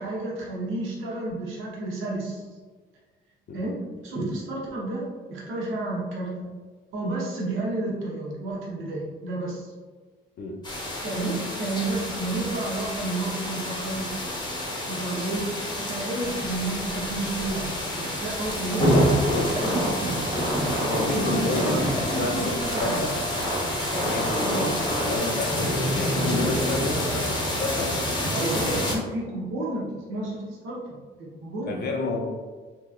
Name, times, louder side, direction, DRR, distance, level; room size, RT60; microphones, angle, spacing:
voice 1, 0.0-2.4 3.5-6.5 6.9-9.7 11.0-14.1 14.9-20.2 21.1-23.1 24.5-24.8 28.3-31.7, right 2 dB, 90° right, -5 dB, 0.9 m, -31 dB
sound 1, 10.6-29.0, equal, 20° left, 0.8 m, -28 dB
sound 2, 18.8-25.2, right 1 dB, 20° right, 0.8 m, -31 dB
voice 2, 20.9-21.8 22.1-23.2 23.9-28.0 31.7-32.3, left 2 dB, 55° left, 0 dB, 0.5 m, -30 dB
3.0 x 2.9 x 2.4 m, 1.4 s
cardioid pair, 90°, 20 cm